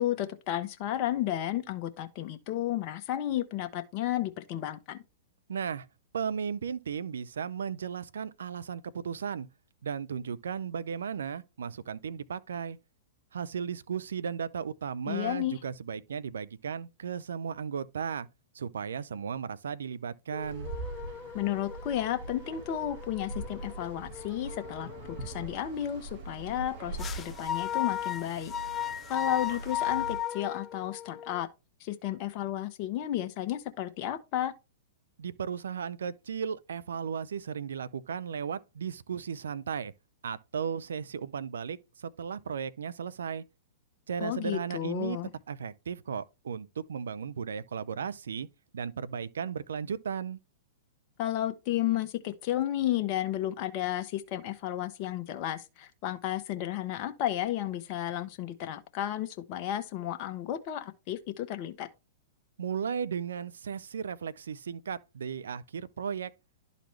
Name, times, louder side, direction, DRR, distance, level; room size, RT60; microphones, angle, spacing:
voice 1, 0.0-5.0 15.0-15.6 21.3-24.9 25.2-28.5 29.1-31.5 31.8-34.5 44.2-45.3 51.2-61.9, left 12 dB, 45° left, 0.9 m, -32 dB
voice 2, 5.5-5.9 6.1-9.5 9.8-12.8 13.3-18.3 18.5-20.7 35.2-39.9 40.2-43.4 44.1-45.2 45.5-48.5 48.7-50.4 62.6-66.3, right 7 dB, 80° right, 0.6 m, -35 dB
sound 1, 20.3-25.5 27.0-31.4, left 10 dB, 25° left, 0.4 m, -37 dB
sound 2, 20.4-30.2, right 3 dB, 55° right, 3.0 m, -42 dB
11.5 x 4.1 x 3.1 m
hypercardioid pair, 115°, 0 cm